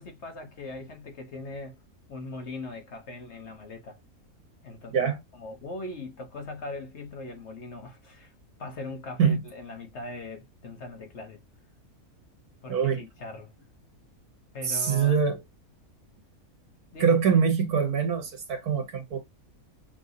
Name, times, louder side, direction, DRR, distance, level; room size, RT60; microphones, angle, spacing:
voice 1, 0.0-1.8 2.1-4.0 4.6-8.3 8.6-11.4 12.6-13.5 14.5-15.1 16.9-17.2, left 2 dB, 55° left, 1.2 m, -40 dB
voice 2, 12.7-13.0 14.6-15.4 17.0-19.2, right 6 dB, 85° right, 1.6 m, -24 dB
6.0 x 2.6 x 2.7 m
omnidirectional pair, 1.5 m